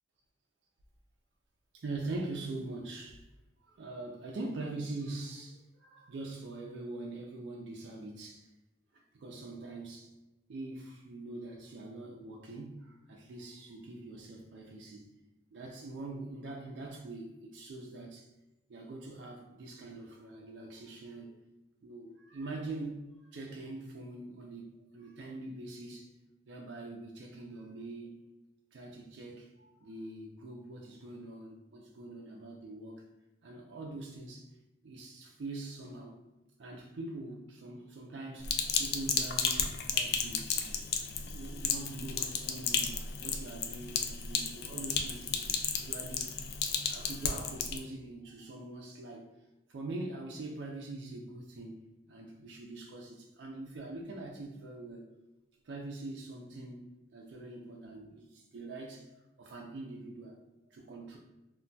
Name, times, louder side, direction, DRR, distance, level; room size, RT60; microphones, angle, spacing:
voice 1, 1.7-3.2 3.7-8.5 9.2-10.1 10.5-15.1 15.5-18.3 18.7-21.4 21.8-23.0 23.3-26.1 26.5-28.2 28.7-33.0 33.4-34.5 34.8-36.2 36.6-38.5 38.8-40.5 41.2-46.3 46.8-49.3 49.7-55.0 55.6-59.1 59.4-60.4 60.7-61.2, right 2 dB, 70° right, -1 dB, 0.4 m, -43 dB
Sink (filling or washing), 38.4-47.8, left 6 dB, 60° left, 0.3 m, -33 dB
2.2 x 2.2 x 3.9 m, 1.0 s
head